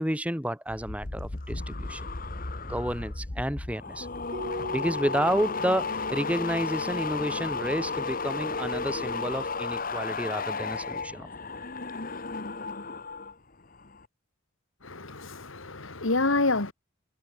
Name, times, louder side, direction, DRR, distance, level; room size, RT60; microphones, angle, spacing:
voice 1, 0.0-2.0 2.7-4.1 4.7-11.3, equal, 5° right, 3.4 m, -30 dB
sound 1, 0.7-13.3 13.6-14.1, left 4 dB, 40° left, 1.3 m, -34 dB
Keyboard (musical), 4.3-7.1, right 1 dB, 40° right, 5.7 m, -41 dB
voice 2, 14.8-16.7, left 2 dB, 70° left, 2.1 m, -27 dB
head